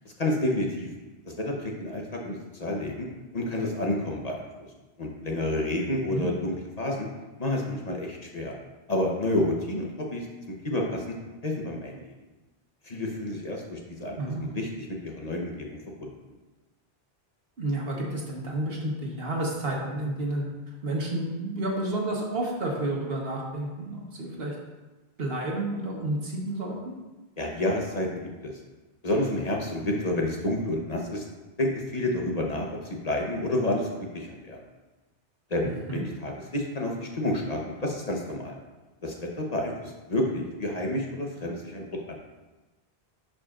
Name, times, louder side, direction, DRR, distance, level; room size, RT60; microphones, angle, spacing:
voice 1, 0.2-0.9 1.3-3.1 3.3-4.5 5.0-7.1 7.4-8.5 8.9-10.3 10.6-11.1 11.4-12.0 12.8-14.2 14.5-15.7 16.0-16.1 27.4-28.5 29.0-31.2 31.6-33.9 34.1-34.6 35.5-38.5 39.0-42.1, left 1 dB, 40° left, -1 dB, 1.0 m, -29 dB
voice 2, 14.2-14.5 17.6-24.5 25.2-26.9 35.6-36.0, right 1 dB, 65° right, -1 dB, 1.4 m, -31 dB
11.5 x 5.1 x 2.5 m, 1.2 s
omnidirectional pair, 1.1 m